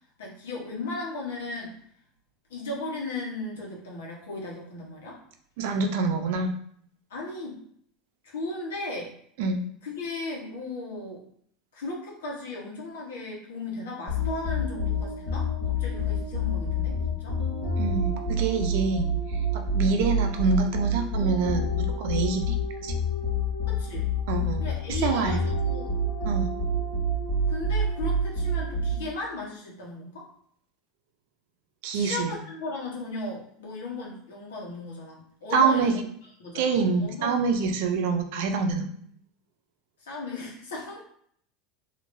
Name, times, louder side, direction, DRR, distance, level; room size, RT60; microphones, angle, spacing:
voice 1, 0.2-1.8 2.5-5.2 7.1-7.6 8.2-9.1 9.8-11.2 11.7-17.4 23.7-24.1 24.6-26.0 27.5-30.3 31.9-36.1 36.4-37.4 40.0-41.0, left 2 dB, 85° left, -3 dB, 1.2 m, -36 dB
voice 2, 5.6-6.5 9.4-9.6 17.8-19.1 19.5-22.5 22.8-22.9 24.3-24.6 25.0-25.4 26.2-26.5 31.8-32.4 35.5-35.9 36.5-38.9, right 4 dB, 70° right, 5 dB, 0.5 m, -26 dB
sound 1, 14.1-29.2, equal, 65° left, 1.2 m, -28 dB
3.0 x 2.8 x 2.6 m, 0.64 s
hypercardioid pair, 100°, 0 cm